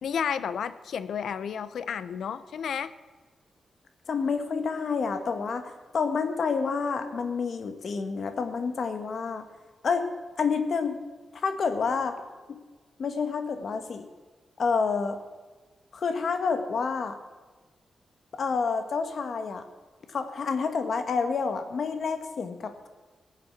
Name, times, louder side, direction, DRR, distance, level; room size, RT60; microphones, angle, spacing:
voice 1, 0.0-2.9, left 7 dB, 80° left, 15 dB, 0.6 m, -31 dB
voice 2, 4.1-9.4 9.8-10.1 10.4-11.0 11.3-12.2 12.5-12.6 13.0-14.1 14.6-15.2 15.9-17.2 18.3-19.6 20.1-22.9, left 5 dB, 60° left, 8 dB, 1.2 m, -28 dB
17.5 x 7.4 x 5.8 m, 1.3 s
wide cardioid pair, 130°, 0 cm